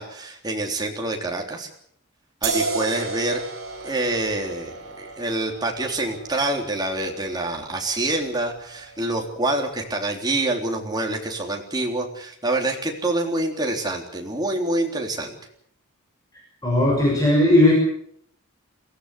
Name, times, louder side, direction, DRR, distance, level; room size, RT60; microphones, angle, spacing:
voice 1, 0.0-1.7 2.4-3.4 3.8-15.4, right 2 dB, 20° right, 1 dB, 3.5 m, -26 dB
sound 1, 2.4-9.7, right 3 dB, 60° right, 6.9 m, -34 dB
voice 2, 16.6-17.7, left 1 dB, 15° left, -2 dB, 6.4 m, -17 dB
23.0 x 16.0 x 8.3 m, 0.68 s
head